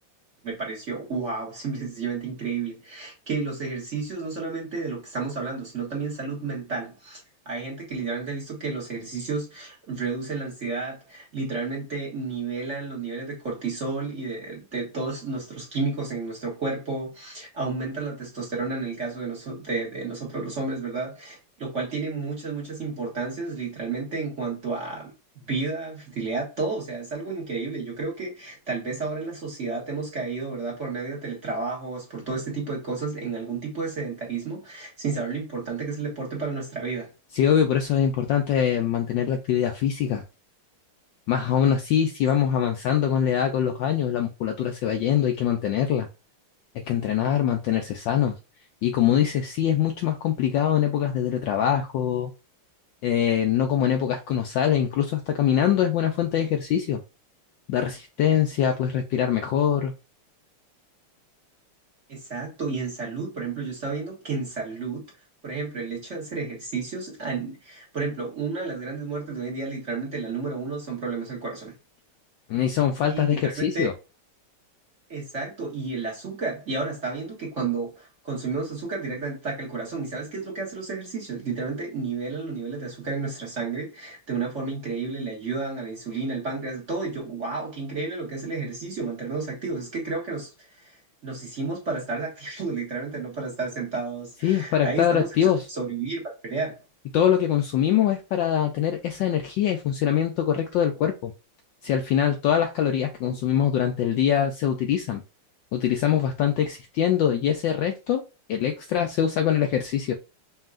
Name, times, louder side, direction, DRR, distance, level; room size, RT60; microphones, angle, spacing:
voice 1, 0.4-37.1 62.1-65.0 65.4-71.7 73.0-73.9 75.1-96.7 103.2-103.4, right 4 dB, 40° right, 1.4 m, -31 dB
voice 2, 37.3-40.2 41.3-46.1 46.9-48.3 48.8-52.3 53.0-57.0 57.7-59.9 72.5-73.9 94.4-95.6 97.1-101.3 101.8-105.2 105.7-108.2 108.5-110.1, left 9 dB, 75° left, 1.1 m, -23 dB
5.5 x 2.7 x 2.4 m
omnidirectional pair, 2.4 m